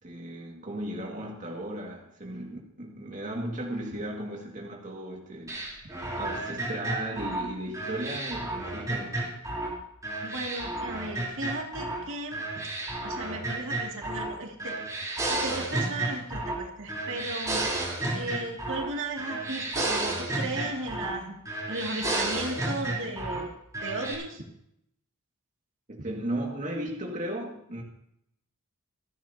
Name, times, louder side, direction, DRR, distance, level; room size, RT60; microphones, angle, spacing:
voice 1, 0.0-5.6 6.2-9.4 25.9-27.8, right 1 dB, 35° right, -2 dB, 2.1 m, -36 dB
sound 1, 5.5-9.7 10.0-12.0 12.3-14.3 14.6-16.6 16.9-18.9 19.2-21.2 21.5-23.4 23.7-24.1, right 2 dB, 15° right, 3.8 m, -32 dB
voice 2, 10.2-12.4 13.0-14.8 15.3-17.6 18.1-21.4 21.7-23.5 23.8-24.4, right 2 dB, 65° right, 0 dB, 2.4 m, -35 dB
27.0 x 10.5 x 2.9 m, 0.76 s
head